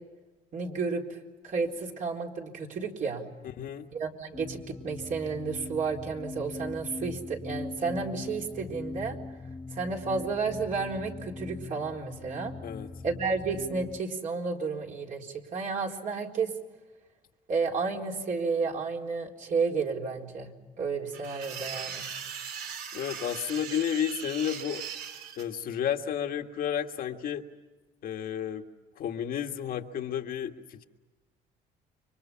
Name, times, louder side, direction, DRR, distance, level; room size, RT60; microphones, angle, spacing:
voice 1, 0.5-3.3 3.9-9.2 9.7-12.5 13.0-16.5 17.5-20.5 20.8-22.1, right 4 dB, 50° right, 0 dB, 4.1 m, -32 dB
voice 2, 3.6-3.9 12.6-12.9 22.9-24.8 25.4-27.4 28.0-28.7 29.0-30.8, left 9 dB, 60° left, 4 dB, 1.7 m, -32 dB
sound 1, 4.3-14.0, left 3 dB, 15° left, 0.8 m, -41 dB
sound 2, 21.1-25.4, right 7 dB, 70° right, 3.5 m, -39 dB
30.0 x 25.0 x 5.8 m, 1.2 s
cardioid pair, 110°, 17 cm